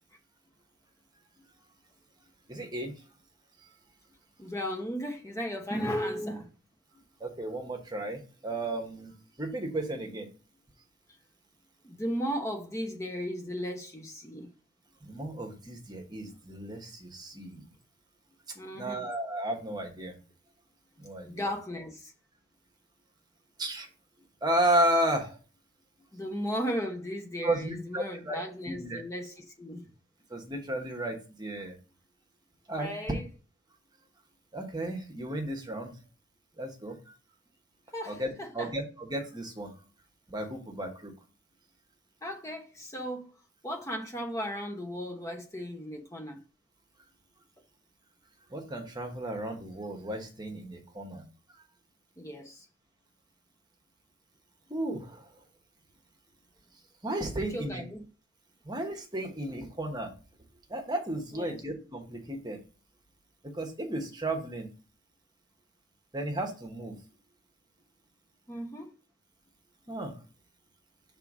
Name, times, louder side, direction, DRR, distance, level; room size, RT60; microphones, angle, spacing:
voice 1, 2.5-2.9 7.2-10.3 15.0-17.7 18.7-20.2 21.0-21.4 23.6-23.9 24.4-25.4 27.4-28.4 28.7-29.0 30.3-31.7 32.7-32.9 34.5-36.0 36.6-37.0 38.0-38.3 38.5-39.7 40.3-41.1 48.5-51.2 54.7-55.3 57.0-57.8 58.6-60.1 60.7-62.6 63.4-64.7 66.1-67.0 69.9-70.1, right 1 dB, 20° right, 1.2 m, -33 dB
voice 2, 4.4-6.5 11.8-14.5 18.5-19.1 21.2-22.1 26.1-29.9 32.7-33.3 37.9-38.7 42.2-43.3 43.6-46.4 52.2-52.7 57.5-58.1 61.3-61.6 68.5-68.9, equal, 15° left, 0.9 m, -36 dB
5.8 x 3.5 x 4.9 m
head